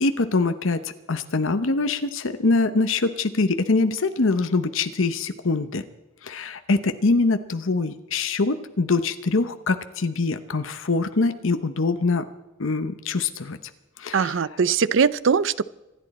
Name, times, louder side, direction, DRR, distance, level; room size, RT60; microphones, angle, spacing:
voice 1, 0.0-5.8 6.2-12.3 12.6-13.6 14.0-14.4, left 3 dB, 65° left, 10 dB, 0.9 m, -24 dB
voice 2, 14.1-15.6, right 6 dB, 60° right, 19 dB, 0.5 m, -21 dB
25.5 x 11.5 x 4.3 m, 1.0 s
head